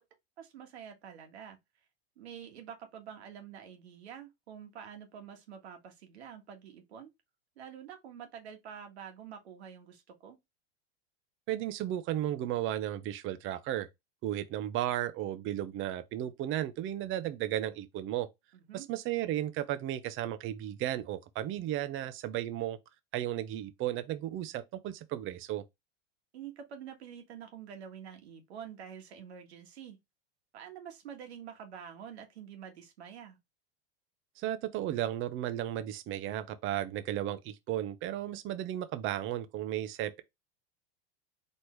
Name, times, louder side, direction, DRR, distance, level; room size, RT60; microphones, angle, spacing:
voice 1, 0.4-1.6 2.2-7.1 7.6-10.4 18.5-18.9 26.3-30.0 30.5-33.4, right 8 dB, 85° right, 1.7 m, -47 dB
voice 2, 11.5-13.9 14.2-18.3 18.7-22.8 23.1-25.6 34.4-40.2, right 12 dB, 40° right, 0.7 m, -34 dB
4.5 x 3.2 x 3.2 m
hypercardioid pair, 110°, 32 cm